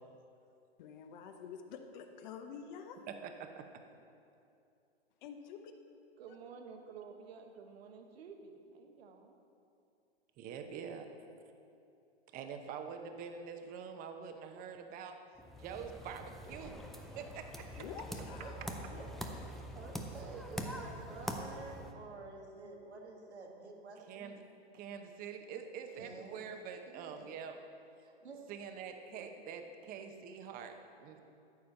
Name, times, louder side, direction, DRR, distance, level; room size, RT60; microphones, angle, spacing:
voice 1, 0.8-3.0 5.2-5.7 17.8-19.0 20.8-21.0, left 7 dB, 45° left, 6 dB, 0.9 m, -48 dB
voice 2, 3.1-3.7 10.4-11.1 12.3-15.2 15.5-17.8 24.0-24.4 24.7-27.6 28.5-31.2, right 7 dB, 25° right, 6 dB, 0.9 m, -45 dB
voice 3, 6.2-9.4, right 5 dB, 65° right, 4 dB, 1.3 m, -51 dB
sound 1, 15.4-21.9, equal, ahead, 0.4 m, -44 dB
voice 4, 18.1-19.1 19.7-24.4 26.0-26.6 26.9-27.3 28.0-28.4, right 3 dB, 90° right, 1 dB, 1.9 m, -50 dB
13.5 x 4.9 x 7.1 m, 2.7 s
hypercardioid pair, 125°, 32 cm